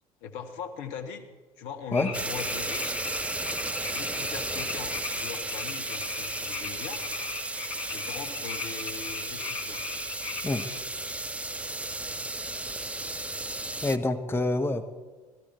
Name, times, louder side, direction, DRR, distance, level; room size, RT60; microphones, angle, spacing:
voice 1, 0.2-1.2 1.6-3.1 3.9-7.0 7.9-9.8, left 6 dB, 60° left, 6 dB, 1.4 m, -40 dB
sound 1, 1.9-10.8, left 5 dB, 40° left, 2.5 m, -38 dB
sound 2, 2.1-14.0, right 2 dB, 5° right, 0.5 m, -34 dB
voice 2, 13.8-14.9, left 2 dB, 10° left, 8 dB, 0.9 m, -27 dB
17.0 x 14.5 x 4.5 m, 1.3 s
figure-of-eight pair, 60°, 19 cm